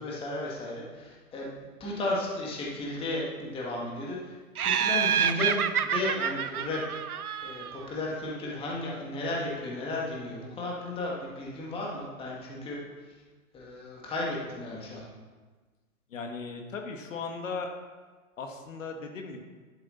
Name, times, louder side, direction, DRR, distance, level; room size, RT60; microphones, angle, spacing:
voice 1, 0.0-4.3 4.6-7.0 7.4-12.8 13.5-15.0, left 2 dB, 10° left, -3 dB, 1.9 m, -34 dB
Laughter, 4.6-7.9, right 8 dB, 85° right, 0.8 m, -28 dB
voice 2, 16.1-17.7 18.4-19.4, left 4 dB, 60° left, 4 dB, 1.5 m, -37 dB
11.0 x 7.9 x 4.2 m, 1.4 s
hypercardioid pair, 140°, 43 cm